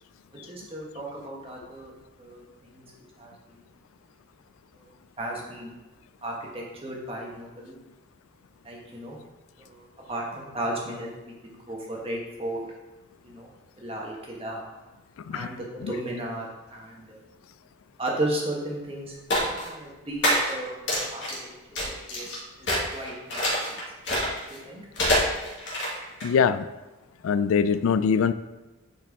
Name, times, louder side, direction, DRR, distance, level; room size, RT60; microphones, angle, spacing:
voice 1, 0.5-1.9 2.2-2.8 3.2-3.3 5.2-5.7 6.2-7.8 8.6-9.2 9.6-11.2 11.4-12.6 13.2-13.5 13.8-14.6 15.3-17.2 18.0-20.7 21.1-21.2 21.8-22.3 22.6-23.4 24.6-24.8, right 1 dB, 25° right, -3 dB, 1.4 m, -34 dB
sound 1, 19.3-19.7 20.2-20.5 20.9-21.4 21.7-22.4 22.6-24.6 25.0-26.3, equal, 55° left, 1.9 m, -25 dB
voice 2, 26.2-26.6 27.2-28.3, left 6 dB, 80° left, 13 dB, 0.3 m, -22 dB
9.6 x 4.6 x 3.6 m, 1.1 s
head